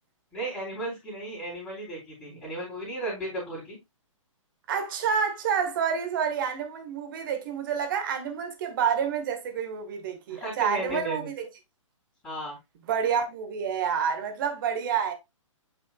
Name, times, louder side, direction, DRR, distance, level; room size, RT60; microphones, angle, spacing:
voice 1, 0.3-3.8 10.3-11.3 12.2-12.6, right 1 dB, 10° left, 3.9 m, -34 dB
voice 2, 4.7-11.5 12.9-15.1, right 7 dB, 40° right, 1.8 m, -28 dB
8.1 x 5.5 x 2.4 m
figure-of-eight pair, 125°, 17 cm